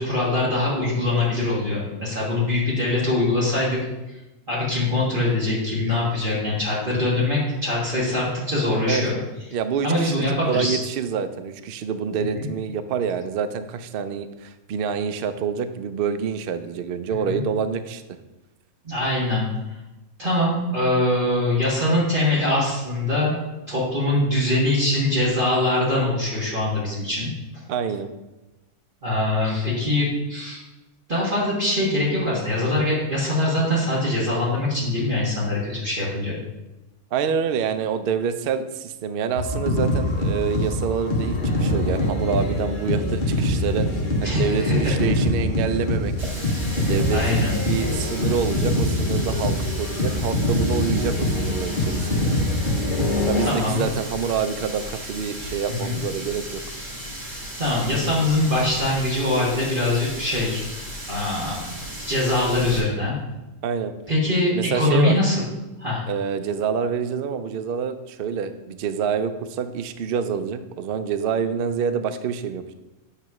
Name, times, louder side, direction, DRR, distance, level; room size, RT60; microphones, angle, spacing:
voice 1, 0.0-3.8 4.5-9.2 9.8-10.8 12.4-12.5 17.2-17.4 18.8-19.5 20.2-23.4 23.7-27.3 29.0-30.6 31.1-36.4 44.2-44.9 47.1-47.6 53.4-53.8 55.7-56.0 57.6-60.6 61.1-61.6 62.1-63.2 64.1-65.4 65.8-66.0, left 2 dB, 35° right, -7 dB, 1.6 m, -23 dB
voice 2, 9.5-18.0 27.7-28.1 37.1-46.1 46.7-52.3 53.3-56.6 63.6-63.9 64.5-65.1 66.1-72.7, right 7 dB, 85° right, 10 dB, 0.5 m, -27 dB
sound 1, 39.4-53.5, left 1 dB, 40° left, 0.9 m, -24 dB
Water tap faucet, 46.2-62.8, equal, 55° right, 2.7 m, -35 dB
8.4 x 3.1 x 5.9 m, 1.0 s
omnidirectional pair, 1.6 m